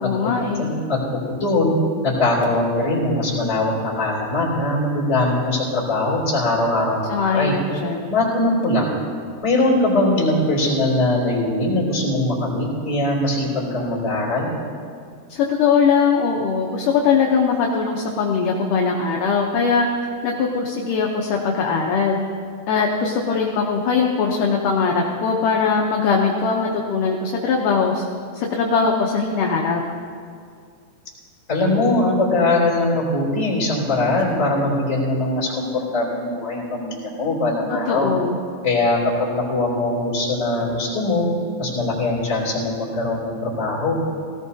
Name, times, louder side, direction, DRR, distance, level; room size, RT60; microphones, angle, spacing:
voice 1, 0.0-0.7 7.1-8.1 15.3-19.9 20.2-22.2 22.7-28.0 28.3-29.8 37.9-38.4, left 5 dB, 75° left, 0 dB, 2.1 m, -20 dB
voice 2, 0.6-1.7 2.0-7.5 8.1-8.9 9.4-14.5 31.5-38.1 38.6-41.3 41.6-43.9, left 2 dB, 20° left, -6 dB, 3.3 m, -21 dB
18.0 x 16.5 x 2.8 m, 2.2 s
omnidirectional pair, 4.5 m